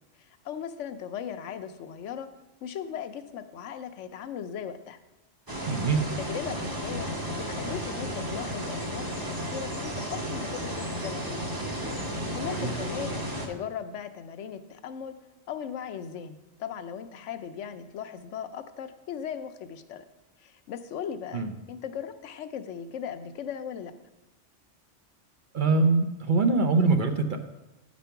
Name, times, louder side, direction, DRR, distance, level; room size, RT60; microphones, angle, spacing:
voice 1, 0.2-2.3 2.6-5.0 6.2-11.5 12.1-13.1 13.5-15.2 15.5-20.0 20.4-23.9, left 8 dB, 80° left, 9 dB, 1.0 m, -38 dB
sound 1, 5.5-13.5, equal, 20° right, 0.9 m, -33 dB
voice 2, 5.7-6.1 12.4-12.8 21.3-21.5 25.5-27.4, right 3 dB, 50° right, 6 dB, 0.7 m, -23 dB
8.9 x 5.2 x 5.7 m, 1.0 s
omnidirectional pair, 1.2 m